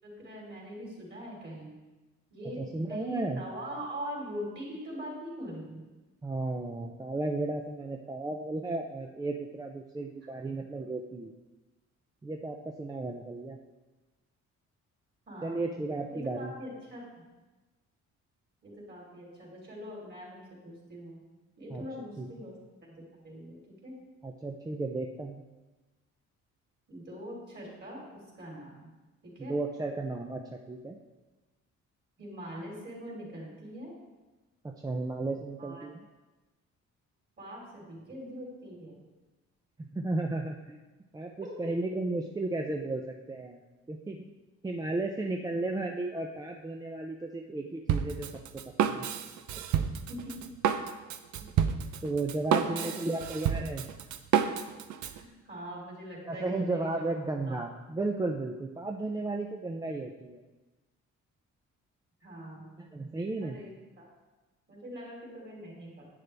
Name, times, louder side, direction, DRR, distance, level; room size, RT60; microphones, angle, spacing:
voice 1, 0.0-1.8 2.3-2.6 2.9-5.8 10.2-10.3 15.3-15.8 16.1-17.3 18.6-21.2 21.6-22.6 22.9-24.0 26.9-28.0 28.3-28.9 29.2-29.6 32.2-33.9 35.6-35.9 37.4-39.0 41.4-41.5 50.1-50.5 52.5-53.0 55.1-57.1 57.5-57.6 62.2-62.7 63.4-64.1 64.7-66.0, equal, 35° right, -3 dB, 3.5 m, -42 dB
voice 2, 2.6-3.4 6.2-11.3 12.2-13.6 15.4-16.5 21.7-21.9 22.2-22.3 24.2-25.4 29.4-31.0 34.6-36.0 39.8-40.8 41.1-43.6 43.9-44.3 44.6-48.3 48.8-49.1 51.4-51.5 52.0-53.8 56.3-60.4 62.8-63.6, right 2 dB, 15° right, 2 dB, 0.4 m, -34 dB
Drum kit, 47.9-55.2, right 8 dB, 80° right, 0.7 m, -30 dB
10.5 x 9.2 x 3.4 m, 1.2 s
cardioid pair, 155°, 29 cm